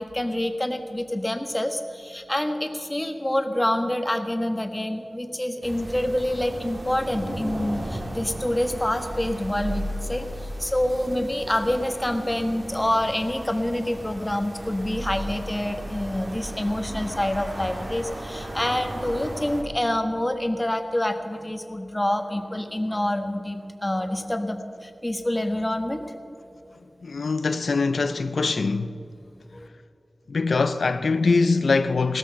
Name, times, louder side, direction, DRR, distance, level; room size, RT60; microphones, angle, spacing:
voice 1, 0.0-26.0 29.5-29.7, left 1 dB, 15° left, 1.3 m, -27 dB
sound 1, 5.6-19.6, right 1 dB, 35° right, 2.0 m, -35 dB
voice 2, 27.0-29.0 30.3-32.2, left 4 dB, 80° left, 0.5 m, -23 dB
18.0 x 13.5 x 5.7 m
wide cardioid pair, 90°, 0 cm